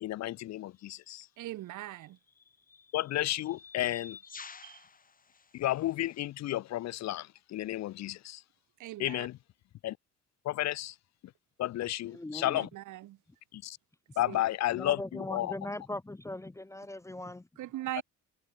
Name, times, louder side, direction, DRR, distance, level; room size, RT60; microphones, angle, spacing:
voice 1, 0.0-1.3 2.9-4.2 5.5-8.4 9.0-9.4 9.8-10.0 10.4-11.0 11.6-12.7 13.5-13.8 14.2-15.5, left 14 dB, 60° left, 0.5 m, -32 dB
sound 1, 0.8-1.0 2.0-6.2, left 5 dB, 30° left, 1.2 m, -52 dB
voice 2, 1.4-2.2 4.6-4.8 8.8-9.3 12.6-13.2 14.3-14.4 17.6-18.0, right 15 dB, 80° right, 1.2 m, -40 dB
voice 3, 12.1-12.6 14.7-17.5, left 1 dB, 10° left, 0.5 m, -40 dB
cardioid pair, 90°, 30 cm